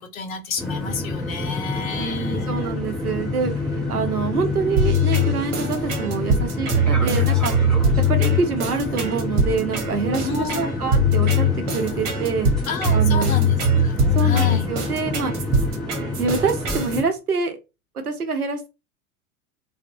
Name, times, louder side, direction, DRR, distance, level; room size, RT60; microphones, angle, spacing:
voice 1, 0.0-2.7 10.2-10.7 12.7-13.6 13.8-14.7, left 5 dB, 70° left, 0.7 m, -31 dB
sound 1, 0.6-17.0, left 2 dB, ahead, 0.5 m, -29 dB
voice 2, 1.9-7.5 8.1-11.5 11.7-12.5 12.9-13.4 14.1-15.5 16.2-17.6 17.9-18.7, right 5 dB, 90° right, 0.5 m, -26 dB
sound 2, 4.8-17.0, left 1 dB, 40° right, 0.9 m, -21 dB
2.6 x 2.0 x 2.6 m
figure-of-eight pair, 85°, 44 cm